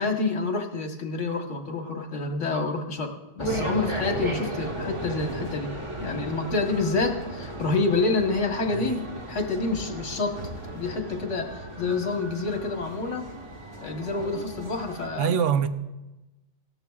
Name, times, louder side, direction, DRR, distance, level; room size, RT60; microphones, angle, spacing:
voice 1, 0.0-5.7 6.0-10.4 10.7-13.3 13.8-15.3, left 3 dB, 90° left, 1.6 m, -28 dB
sound 1, 3.4-15.1, right 1 dB, 25° right, 1.3 m, -35 dB
voice 2, 8.7-9.0 15.2-15.7, right 8 dB, 85° right, 1.0 m, -24 dB
17.5 x 13.5 x 2.4 m
omnidirectional pair, 1.2 m